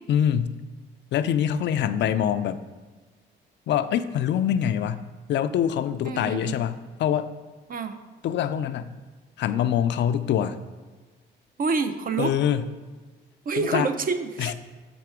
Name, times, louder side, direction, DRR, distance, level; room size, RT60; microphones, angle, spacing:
voice 1, 0.1-0.5 1.1-2.6 3.7-7.3 8.2-8.9 9.4-10.6 12.2-12.7 13.6-13.9 14.4-14.5, left 9 dB, 65° left, 12 dB, 0.4 m, -24 dB
voice 2, 6.0-6.6 7.7-8.0 11.6-12.3 13.5-14.5, right 4 dB, 45° right, 9 dB, 0.6 m, -27 dB
6.8 x 4.3 x 4.7 m, 1.3 s
cardioid pair, 90°, 20 cm